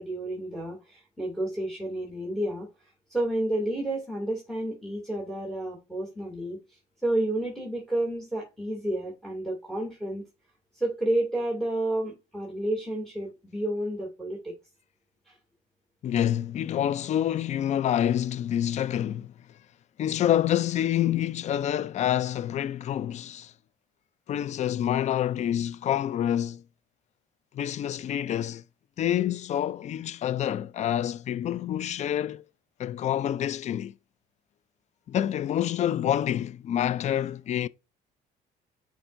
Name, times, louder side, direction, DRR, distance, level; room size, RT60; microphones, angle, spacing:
voice 1, 0.0-2.7 3.1-10.2 10.7-14.5 15.3-15.4, right 1 dB, ahead, 2.5 m, -30 dB
voice 2, 16.0-19.3 20.0-23.5 24.3-26.6 27.5-28.6 29.0-32.4 32.8-33.9 35.1-37.7, left 11 dB, 45° left, 0.4 m, -27 dB
10.0 x 4.5 x 2.6 m
cardioid pair, 110°, 17 cm